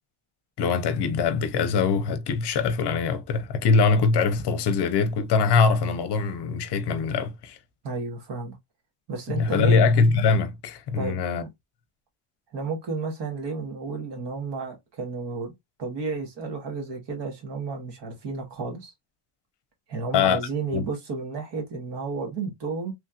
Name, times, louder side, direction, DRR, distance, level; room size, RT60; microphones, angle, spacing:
voice 1, 0.6-7.6 9.3-11.4 20.1-20.4 20.7-20.8, left 5 dB, 55° left, 0.7 m, -22 dB
voice 2, 7.8-8.6 9.1-9.8 10.9-11.2 12.5-15.5 15.8-18.9 19.9-22.9, right 4 dB, 55° right, 1.4 m, -32 dB
3.2 x 2.8 x 2.4 m
cardioid pair, 160°, 50 cm